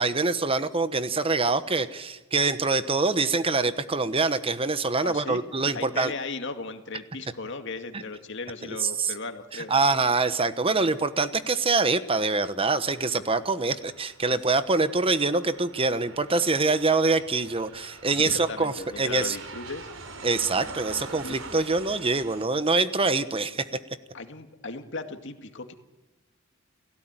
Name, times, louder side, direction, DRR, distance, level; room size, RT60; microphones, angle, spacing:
voice 1, 0.0-6.1 8.8-9.1 9.5-19.4 20.2-23.7, right 3 dB, 30° right, 12 dB, 1.1 m, -25 dB
voice 2, 5.0-5.4 5.7-9.9 14.3-14.4 18.1-19.9 21.2-21.4 24.1-25.7, left 3 dB, 65° left, 7 dB, 2.2 m, -37 dB
Aircraft, 12.5-22.5, right 3 dB, 85° right, 3.5 m, -45 dB
30.0 x 17.0 x 9.0 m, 1.2 s
head